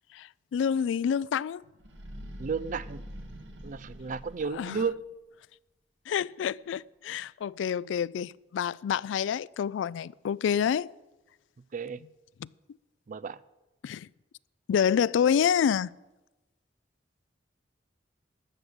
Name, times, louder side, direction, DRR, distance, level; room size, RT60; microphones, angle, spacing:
voice 1, 0.1-1.6 4.5-4.8 6.1-10.9 12.4-12.5 13.8-14.1 14.7-15.9, left 8 dB, 90° left, 0.3 m, -28 dB
sound 1, 1.8-5.1, equal, 75° right, 1.7 m, -44 dB
voice 2, 2.4-3.0 3.6-5.0 11.7-12.0 13.1-13.4, right 5 dB, 45° right, 0.4 m, -33 dB
13.5 x 6.6 x 8.5 m
head